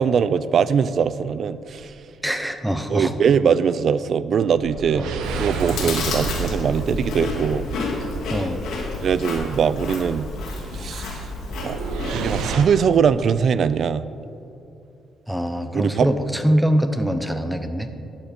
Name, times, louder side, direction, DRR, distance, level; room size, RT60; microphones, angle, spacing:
voice 1, 0.0-1.9 2.9-5.0 5.4-7.7 9.0-10.3 10.7-11.3 11.6-11.8 12.1-14.1 15.7-16.1, right 7 dB, 55° right, 16 dB, 0.4 m, -21 dB
sound 1, 1.7-2.0 4.5-9.1 11.4-12.6, right 4 dB, 90° right, 0.8 m, -30 dB
voice 2, 2.2-3.1 4.9-5.1 8.3-8.7 15.3-17.9, equal, 5° right, 8 dB, 0.8 m, -23 dB
Chewing mastication, 5.2-12.5, left 3 dB, 80° left, 1.9 m, -30 dB
11.5 x 7.3 x 5.2 m, 2.7 s
cardioid pair, 90°, 0 cm